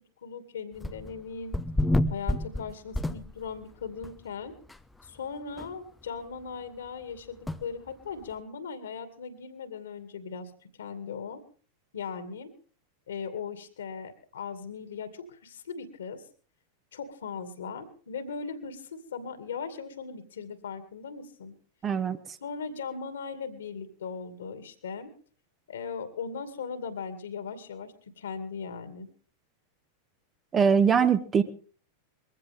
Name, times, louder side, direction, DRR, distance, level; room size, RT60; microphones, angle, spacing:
voice 1, 0.2-1.6 2.1-4.5 5.0-10.5 10.8-11.4 11.9-12.5 13.1-16.2 16.9-21.5 22.4-25.1 25.7-29.1, left 5 dB, 65° left, 9 dB, 2.4 m, -38 dB
sound 1, 0.8-1.2 1.5-3.6 4.0-4.1 4.7-4.8 5.0-5.1 5.6-5.7 7.5-7.6, left 1 dB, 5° left, 0.8 m, -28 dB
voice 2, 21.8-22.2 30.5-31.4, right 6 dB, 25° right, 10 dB, 1.3 m, -22 dB
22.0 x 15.5 x 3.6 m, 0.41 s
figure-of-eight pair, 90°, 0 cm